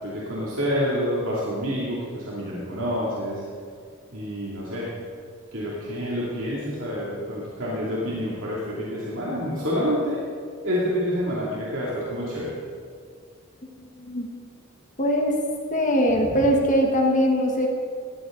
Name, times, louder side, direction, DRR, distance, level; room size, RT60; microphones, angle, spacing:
voice 1, 0.0-3.4 4.1-4.9 5.5-10.2 10.6-12.6 16.2-16.4, equal, 60° right, -6 dB, 2.7 m, -28 dB
voice 2, 15.0-15.4 15.7-17.7, equal, 35° left, 1 dB, 1.5 m, -21 dB
18.5 x 15.0 x 3.9 m, 2.2 s
head